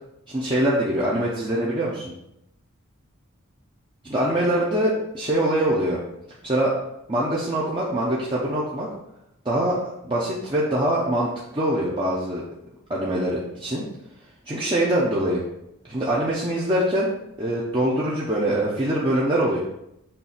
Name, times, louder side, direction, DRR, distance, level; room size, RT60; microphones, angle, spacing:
voice 1, 0.3-2.1 4.0-6.0 6.4-6.7 7.1-8.9 9.4-9.8 10.0-12.4 12.9-13.8 14.5-15.4 15.9-17.1 17.4-19.6, right 1 dB, 25° right, -6 dB, 0.9 m, -23 dB
6.8 x 2.7 x 5.7 m, 0.83 s
head